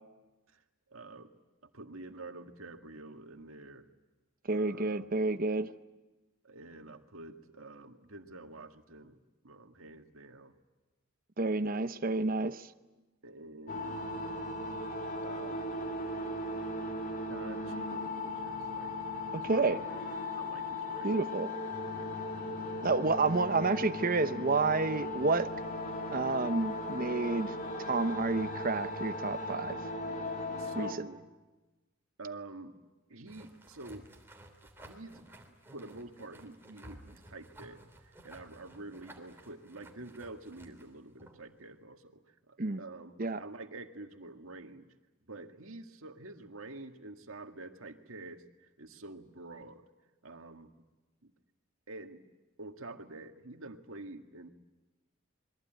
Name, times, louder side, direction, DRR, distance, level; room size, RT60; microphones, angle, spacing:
voice 1, 0.9-1.3 1.7-3.9 4.5-5.1 6.4-9.2 9.4-10.5 11.7-11.9 13.2-14.0 15.2-15.7 17.3-18.9 19.3-19.8 20.2-21.2 30.6-31.2 32.2-32.7 33.1-34.1 34.8-35.3 35.7-44.9 45.3-49.8 50.2-50.7 51.2-51.3 51.9-52.2 52.6-54.5, right 2 dB, 85° right, 6 dB, 1.9 m, -48 dB
voice 2, 4.5-5.7 11.4-12.6 19.3-19.8 21.0-21.5 22.8-25.5 26.1-29.8 30.7-30.9 42.6-42.8 43.2-43.4, right 3 dB, 45° right, 11 dB, 0.9 m, -30 dB
sound 1, 13.7-30.9, left 2 dB, 45° left, 3.1 m, -37 dB
sound 2, 33.3-41.5, right 1 dB, 10° right, 3.2 m, -55 dB
27.5 x 22.0 x 9.2 m, 1.1 s
head